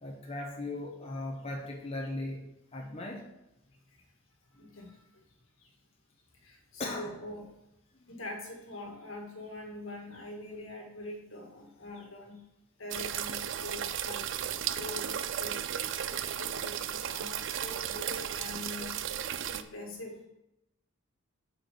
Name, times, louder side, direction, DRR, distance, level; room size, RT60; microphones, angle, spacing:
voice 1, 0.0-2.4 2.7-3.2 6.8-7.1 8.0-8.1, left 2 dB, 30° left, 0 dB, 0.9 m, -37 dB
voice 2, 4.5-5.0 5.6-5.7 6.4-7.5 8.1-12.4 12.8-15.6 15.9-19.0 19.5-20.2, left 2 dB, 75° left, 1 dB, 1.7 m, -44 dB
sound 1, 12.9-19.6, right 10 dB, 60° right, 0.4 m, -35 dB
6.5 x 4.4 x 6.7 m, 0.87 s
head